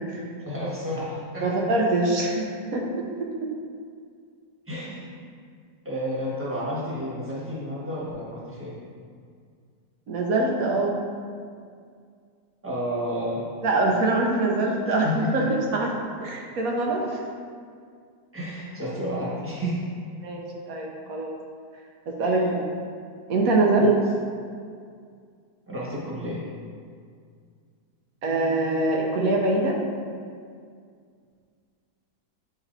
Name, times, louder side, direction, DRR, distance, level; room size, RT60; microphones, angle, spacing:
voice 1, 0.5-1.5 4.7-5.1 5.8-8.7 12.6-13.4 14.9-15.5 18.3-19.8 22.2-22.3 23.7-23.9 25.7-26.4, equal, 10° right, -7 dB, 1.3 m, -31 dB
voice 2, 1.4-2.9 3.4-3.5 10.1-10.9 13.6-15.9 16.2-17.2 20.2-20.4 20.7-21.4 22.1-22.6 23.3-23.9 28.2-29.8, right 2 dB, 65° right, -1 dB, 1.1 m, -23 dB
9.0 x 4.2 x 2.6 m, 2.1 s
omnidirectional pair, 1.8 m